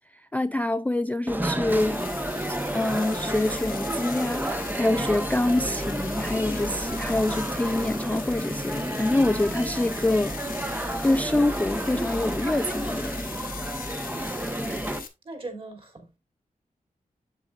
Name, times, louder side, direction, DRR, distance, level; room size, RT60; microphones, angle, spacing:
voice 1, 0.1-2.0 2.5-10.4 11.0-13.1, left 2 dB, 10° left, 0.3 m, -26 dB
sound 1, 1.3-15.0, right 1 dB, 10° right, 0.9 m, -31 dB
sound 2, 1.7-15.1, left 6 dB, 80° left, 1.3 m, -40 dB
voice 2, 15.2-16.2, right 2 dB, 40° right, 2.9 m, -41 dB
8.4 x 7.5 x 2.4 m
wide cardioid pair, 100°, 15 cm